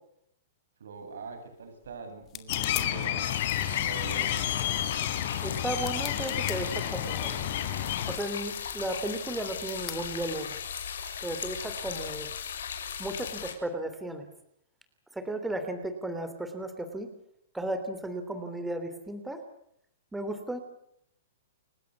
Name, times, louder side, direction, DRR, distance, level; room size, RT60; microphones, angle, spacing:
voice 1, 0.8-4.5, right 4 dB, 90° right, 6 dB, 7.7 m, -43 dB
sound 1, 1.0-10.8, left 14 dB, 25° left, 2.3 m, -46 dB
sound 2, 2.5-8.2, left 12 dB, 45° left, 4.0 m, -31 dB
sound 3, 3.2-13.5, left 7 dB, 80° left, 6.4 m, -37 dB
voice 2, 5.4-7.3 8.1-10.5 11.2-12.3 13.0-14.2 15.1-17.1 17.5-19.4 20.1-20.6, right 1 dB, 5° right, 7 dB, 3.2 m, -34 dB
30.0 x 16.5 x 8.4 m, 0.72 s
hypercardioid pair, 165°, 0 cm